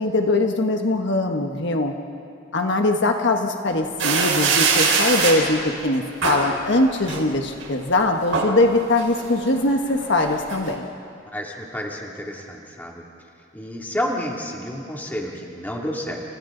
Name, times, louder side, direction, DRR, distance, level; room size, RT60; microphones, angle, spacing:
voice 1, 0.0-1.9 2.5-10.9, left 2 dB, 65° left, 4 dB, 1.3 m, -21 dB
sound 1, 4.0-5.4 6.2-6.5 7.0-7.7 8.1-8.5 9.0-10.7, right 4 dB, 90° right, 4.6 m, -22 dB
voice 2, 11.3-13.0 13.5-16.2, equal, 10° left, -2 dB, 2.7 m, -30 dB
30.0 x 29.5 x 3.9 m, 2.6 s
head